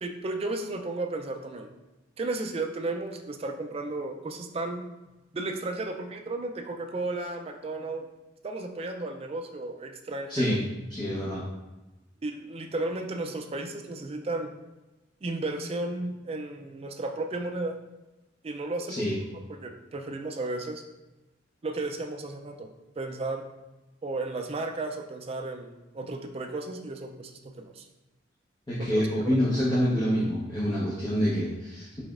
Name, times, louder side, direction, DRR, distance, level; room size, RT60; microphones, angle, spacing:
voice 1, 0.0-1.7 2.2-4.8 5.3-8.1 8.4-10.6 12.2-14.5 15.2-17.8 18.4-19.2 19.5-20.8 21.6-22.7 23.0-23.4 24.0-27.3 27.6-27.9 28.8-29.1, right 2 dB, 30° right, 5 dB, 0.4 m, -34 dB
voice 2, 10.3-10.6 10.9-11.4 18.9-19.2 28.7-32.0, equal, 25° left, -8 dB, 0.8 m, -26 dB
5.0 x 4.2 x 2.4 m, 1.1 s
head